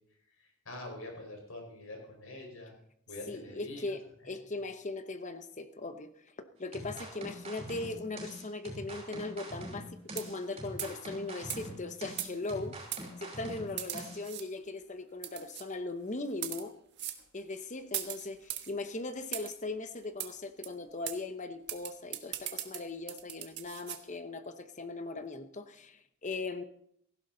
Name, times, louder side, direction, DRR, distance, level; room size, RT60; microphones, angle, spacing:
voice 1, 0.4-2.7 3.1-3.9 4.2-4.4, left 2 dB, 70° left, 1 dB, 4.8 m, -45 dB
voice 2, 3.3-6.1 6.4-9.9 10.1-12.8 13.2-16.7 17.3-26.6, left 3 dB, 35° left, 9 dB, 0.9 m, -39 dB
sound 1, 6.7-14.2, right 1 dB, 30° right, 6.3 m, -44 dB
sound 2, 10.1-10.5 10.8-11.0 11.5-11.6 12.2-12.5 12.9-13.0 13.8-14.5 15.2-15.7 16.3-16.6 17.0-17.2 17.9-18.7 19.3-19.6 20.2-20.3 20.6-20.7 21.1-21.2 21.7-24.0, right 12 dB, 55° right, 1.4 m, -39 dB
17.5 x 15.5 x 4.0 m, 0.71 s
head